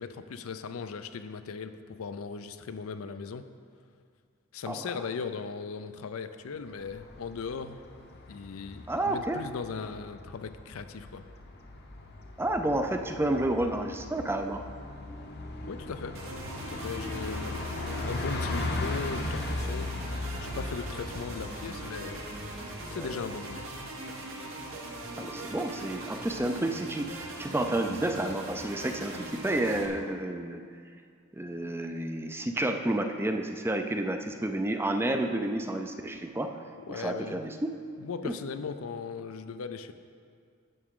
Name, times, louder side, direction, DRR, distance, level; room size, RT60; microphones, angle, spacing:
voice 1, 0.0-3.5 4.5-7.9 8.3-11.3 15.6-16.2 16.6-17.6 18.0-19.9 20.4-22.3 22.8-23.7 36.7-37.4 38.0-39.9, left 5 dB, 80° left, 10 dB, 0.5 m, -38 dB
Bus, 6.7-23.8, left 2 dB, 50° left, 0.8 m, -38 dB
voice 2, 8.9-9.4 12.4-14.6 23.0-23.1 25.2-30.6 31.3-36.6 36.9-37.7 38.2-38.3, right 1 dB, 10° right, 6 dB, 0.4 m, -30 dB
sound 1, 16.1-29.9, right 2 dB, 70° right, 1.0 m, -41 dB
11.0 x 7.0 x 3.7 m, 2.2 s
head